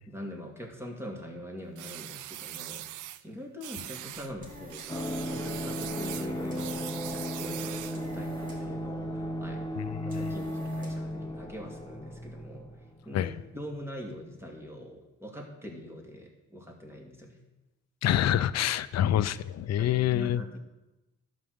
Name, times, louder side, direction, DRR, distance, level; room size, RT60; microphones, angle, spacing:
voice 1, 0.1-12.7 13.1-17.4 19.8-20.6, left 1 dB, 10° right, 1 dB, 2.4 m, -43 dB
sound 1, 1.8-3.2 3.6-4.3 4.7-8.1, right 14 dB, 85° right, 0.6 m, -41 dB
sound 2, 4.1-11.2, right 1 dB, 25° right, 3.1 m, -52 dB
sound 3, 4.9-13.4 13.7-13.8, equal, 15° left, 0.9 m, -35 dB
voice 2, 9.8-10.3 13.1-13.3 18.0-20.4, left 11 dB, 60° left, 16 dB, 0.6 m, -27 dB
11.5 x 5.0 x 7.9 m, 1.0 s
cardioid pair, 90°, 30 cm